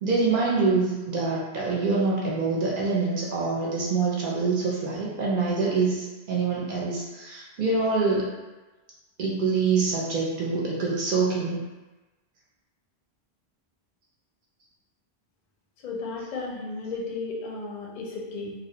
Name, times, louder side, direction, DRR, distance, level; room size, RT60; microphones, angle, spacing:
voice 1, 0.0-8.3 9.2-11.6, right 4 dB, 60° right, -5 dB, 0.7 m, -25 dB
voice 2, 15.8-18.5, left 3 dB, 55° left, -2 dB, 0.5 m, -34 dB
2.3 x 2.1 x 2.7 m, 1.2 s
omnidirectional pair, 1.1 m